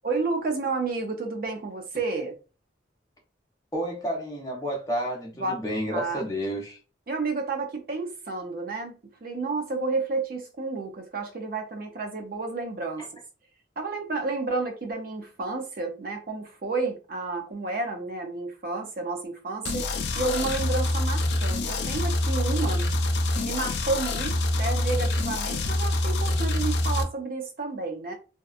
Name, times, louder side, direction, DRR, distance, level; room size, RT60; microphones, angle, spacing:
voice 1, 0.0-2.4 5.4-5.6 5.9-6.2 7.1-13.0 13.8-19.9 20.2-22.9 23.4-28.1, right 3 dB, 50° right, 0.5 m, -31 dB
voice 2, 3.7-6.8, equal, 20° left, 0.8 m, -30 dB
sound 1, 19.6-27.0, left 1 dB, 60° left, 0.4 m, -26 dB
2.7 x 2.2 x 2.4 m
head